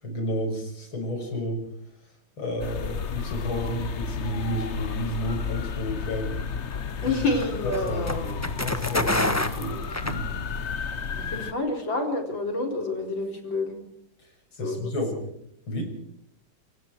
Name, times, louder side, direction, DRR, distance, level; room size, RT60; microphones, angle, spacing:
voice 1, 0.0-1.6 2.4-6.4 7.0-7.2 7.6-10.3 14.6-15.3 15.7-15.9, equal, 90° left, 3 dB, 7.0 m, -31 dB
sound 1, 2.6-11.5, left 6 dB, 45° left, 1.0 m, -32 dB
sound 2, 6.4-10.8, left 1 dB, 10° left, 1.1 m, -29 dB
voice 2, 7.0-8.2 11.2-13.8 14.5-14.9, left 2 dB, 70° left, 4 dB, 4.9 m, -28 dB
27.0 x 23.5 x 4.7 m, 0.72 s
omnidirectional pair, 2.2 m